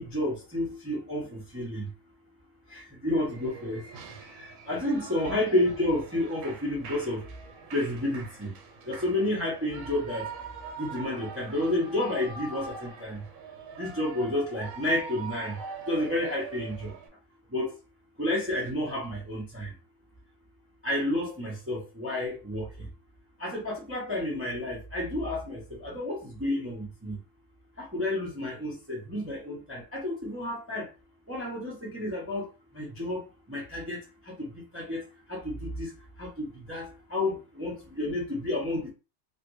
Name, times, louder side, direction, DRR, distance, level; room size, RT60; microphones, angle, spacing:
voice 1, 0.0-1.9 2.7-7.3 7.7-8.6 8.9-10.3 10.8-13.2 13.8-17.0 17.5-17.8 18.2-19.7 20.8-22.9 23.4-27.2 27.8-30.9 31.3-38.9, left 1 dB, 20° right, 0.3 m, -31 dB
Shout / Cheering, 3.2-17.1, right 5 dB, 75° right, 1.5 m, -43 dB
3.2 x 2.5 x 3.1 m
omnidirectional pair, 2.3 m